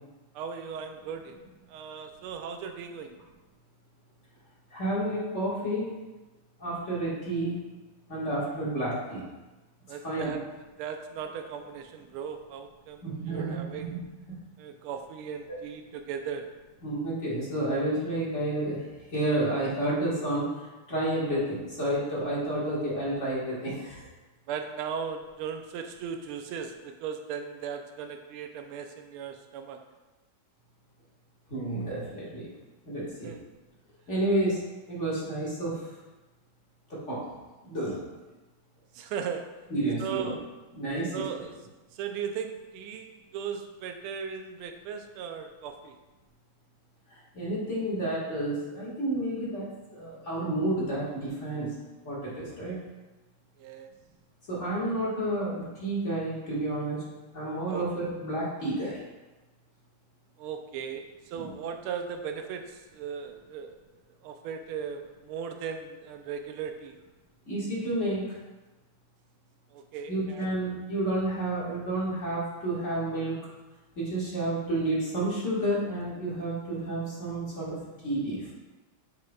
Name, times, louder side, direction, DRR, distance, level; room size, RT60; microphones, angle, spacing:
voice 1, 0.3-1.4 1.7-3.2 9.9-10.5 10.8-14.0 14.6-16.5 24.5-29.8 33.2-33.4 38.9-39.6 40.0-40.5 41.1-41.6 41.9-46.0 53.6-53.9 57.7-57.8 60.4-63.8 64.2-67.0 69.7-70.5, right 7 dB, 85° right, 6 dB, 1.5 m, -37 dB
voice 2, 4.7-6.0 6.6-7.7 8.1-9.2 10.0-10.4 13.0-14.0 16.8-18.8 19.1-20.5 20.9-24.1 31.5-32.5 32.9-33.3 34.1-34.6 34.9-35.8 36.9-37.2 37.6-38.0 39.7-40.3 40.7-41.2 47.1-51.7 52.0-52.8 54.5-57.0 57.3-59.0 61.3-61.5 67.5-68.4 70.1-73.4 74.0-77.8 78.0-78.6, right 1 dB, 35° left, -7 dB, 1.8 m, -30 dB
7.6 x 5.8 x 2.3 m, 1.1 s
omnidirectional pair, 2.3 m